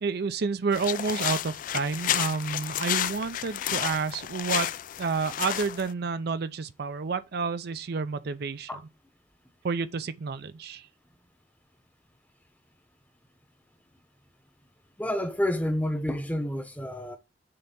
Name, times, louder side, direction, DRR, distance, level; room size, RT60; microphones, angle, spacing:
voice 1, 0.0-4.7 5.0-8.7 9.6-10.9, right 4 dB, 60° right, 0.5 m, -30 dB
sound 1, 0.7-5.9, left 11 dB, 45° left, 0.3 m, -31 dB
voice 2, 15.0-17.2, left 1 dB, 10° left, 0.8 m, -29 dB
6.7 x 3.4 x 5.2 m
head